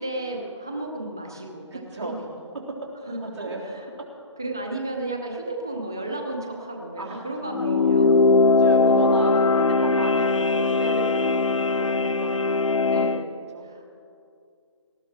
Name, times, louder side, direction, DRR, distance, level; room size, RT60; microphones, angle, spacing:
voice 1, 0.0-2.2 2.5-2.6 3.1-3.9 4.4-8.1 8.8-9.6 12.9-13.3 13.6-13.9, right 2 dB, 5° right, 1 dB, 0.4 m, -33 dB
voice 2, 1.7-2.1 3.2-3.6 7.0-7.2 7.6-8.0 8.5-12.4 13.5-13.7, right 2 dB, 65° right, -2 dB, 3.6 m, -36 dB
sound 1, 7.5-13.2, left 3 dB, 85° left, 0.7 m, -20 dB
18.5 x 13.5 x 4.6 m, 2.5 s
figure-of-eight pair, 170°, 16 cm